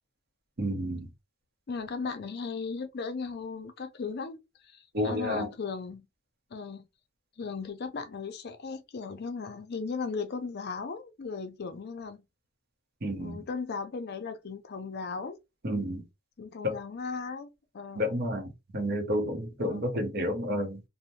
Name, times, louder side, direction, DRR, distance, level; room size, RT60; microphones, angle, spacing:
voice 1, 0.6-1.1 4.9-5.5 13.0-13.4 15.6-16.0 16.6-16.7 18.0-20.8, equal, 50° right, 0.7 m, -30 dB
voice 2, 1.7-6.1 6.5-6.9 7.4-12.2 13.1-15.4 16.4-18.2 19.6-19.9, left 4 dB, 55° left, 0.5 m, -37 dB
2.7 x 2.1 x 3.0 m
head